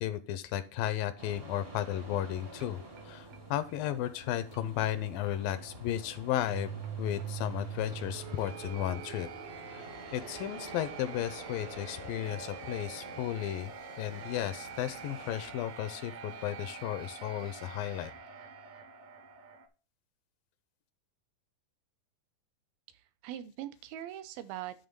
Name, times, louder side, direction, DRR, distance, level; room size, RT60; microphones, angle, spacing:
voice 1, 0.0-2.8 3.1-9.3 9.7-13.7 14.0-18.1, left 12 dB, 80° left, 13 dB, 2.2 m, -34 dB
sound 1, 1.2-15.5, right 2 dB, 50° right, 0.7 m, -50 dB
sound 2, 1.6-19.7, right 7 dB, 70° right, 1.7 m, -45 dB
voice 2, 22.9-24.9, right 12 dB, 85° right, 11 dB, 2.5 m, -42 dB
11.0 x 3.7 x 5.2 m, 0.34 s
omnidirectional pair, 4.1 m